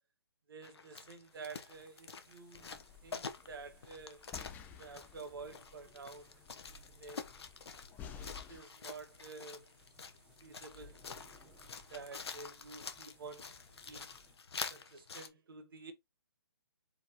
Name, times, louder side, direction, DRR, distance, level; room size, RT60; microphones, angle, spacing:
voice 1, 0.5-4.2 4.8-6.3 7.0-7.3 8.1-9.6 10.4-11.0 11.9-13.6 13.9-14.2 14.7-15.9, right 4 dB, 60° right, 1.4 m, -50 dB
sound 1, 0.6-15.3, left 5 dB, 75° left, 0.9 m, -47 dB
sound 2, 1.3-14.3, equal, 5° right, 2.1 m, -64 dB
sound 3, 2.5-8.6, left 8 dB, 10° left, 0.5 m, -53 dB
4.6 x 3.9 x 2.9 m
hypercardioid pair, 145°, 13 cm